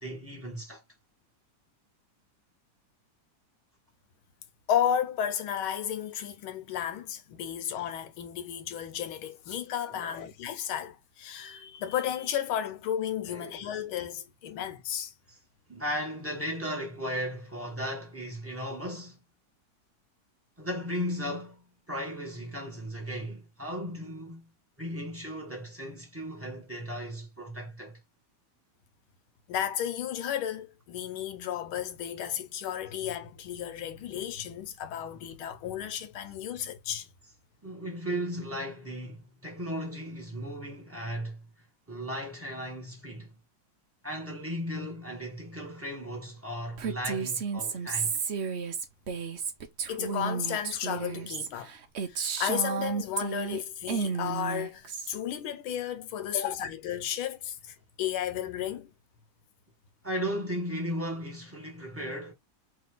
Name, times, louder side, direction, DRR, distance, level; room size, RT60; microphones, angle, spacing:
voice 1, 0.0-0.8 9.9-10.2 13.3-13.6 15.3-15.4 15.7-19.2 20.6-24.5 24.8-28.0 37.6-41.4 41.9-43.3 44.0-48.1 60.0-62.3, equal, 5° right, 1.6 m, -36 dB
voice 2, 4.7-15.1 29.5-37.1 49.9-51.7 52.1-58.9, left 10 dB, 85° left, 1.7 m, -33 dB
Female speech woman speaking, 46.8-53.6 53.9-55.2, right 6 dB, 70° right, 0.6 m, -32 dB
3.4 x 3.2 x 3.8 m
omnidirectional pair, 2.2 m